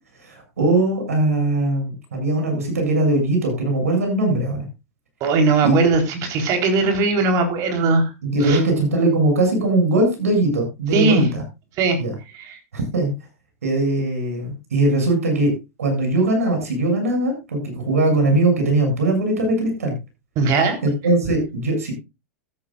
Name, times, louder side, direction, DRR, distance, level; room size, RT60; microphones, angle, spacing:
voice 1, 0.2-4.6 5.6-5.8 8.2-11.4 12.0-12.1 12.7-13.1 13.6-15.5 15.8-19.9 20.8-21.9, right 2 dB, 85° right, 4 dB, 7.5 m, -20 dB
voice 2, 5.2-8.1 8.4-8.6 10.9-11.2 11.8-12.0 12.5-12.6 20.4-20.8, right 3 dB, 45° right, 5 dB, 4.1 m, -19 dB
14.0 x 13.0 x 2.5 m, 0.25 s
hypercardioid pair, 105°, 8 cm